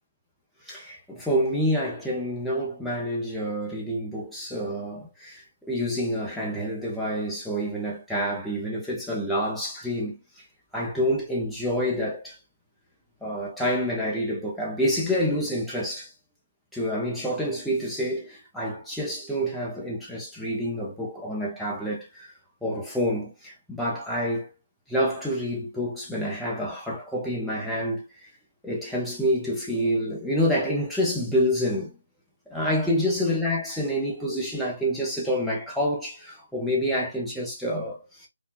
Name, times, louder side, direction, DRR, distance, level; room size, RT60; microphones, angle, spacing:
voice 1, 0.6-10.2 10.7-12.4 13.2-16.1 16.7-22.3 22.6-24.5 24.9-28.3 28.6-31.9 32.5-38.3, equal, ahead, 0.5 m, -28 dB
3.7 x 2.2 x 2.3 m
hypercardioid pair, 170°, 0 cm